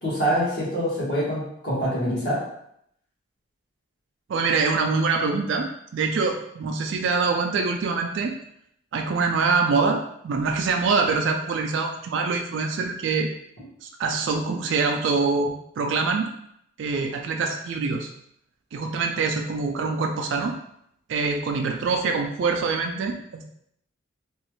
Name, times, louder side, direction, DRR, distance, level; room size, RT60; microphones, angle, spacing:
voice 1, 0.0-2.4, equal, 55° left, -8 dB, 1.5 m, -25 dB
voice 2, 4.3-8.3 8.9-13.3 13.8-16.3 16.8-18.1 18.7-20.6 21.1-23.4, right 4 dB, 70° right, 3 dB, 0.3 m, -24 dB
3.0 x 2.3 x 3.0 m, 0.73 s
head